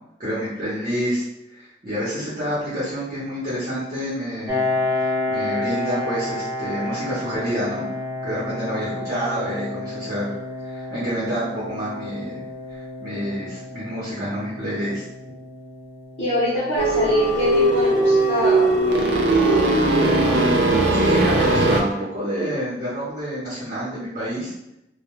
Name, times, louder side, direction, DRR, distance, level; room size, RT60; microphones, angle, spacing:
voice 1, 0.2-7.9 8.2-10.3 10.6-12.4 12.7-15.0 20.9-24.5, equal, 40° right, -9 dB, 0.9 m, -28 dB
Piano, 4.5-19.8, left 2 dB, 10° right, 0.5 m, -31 dB
voice 2, 16.2-19.7, left 1 dB, 45° left, -9 dB, 0.8 m, -24 dB
sound 1, 16.8-21.8, right 2 dB, 90° right, 0.5 m, -19 dB
2.3 x 2.2 x 3.0 m, 0.87 s
head